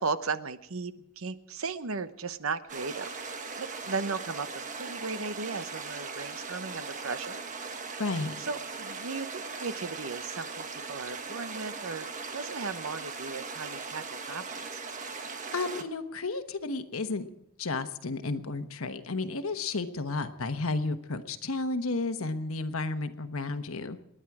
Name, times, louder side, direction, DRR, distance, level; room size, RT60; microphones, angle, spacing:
voice 1, 0.0-3.1 3.6-7.4 8.4-14.8, right 4 dB, 80° right, 13 dB, 0.9 m, -36 dB
sound 1, 2.7-15.8, right 4 dB, 40° right, 1.4 m, -39 dB
voice 2, 8.0-8.3 15.5-17.3 17.6-24.1, left 3 dB, 90° left, 9 dB, 1.2 m, -32 dB
28.5 x 10.0 x 4.8 m, 0.84 s
head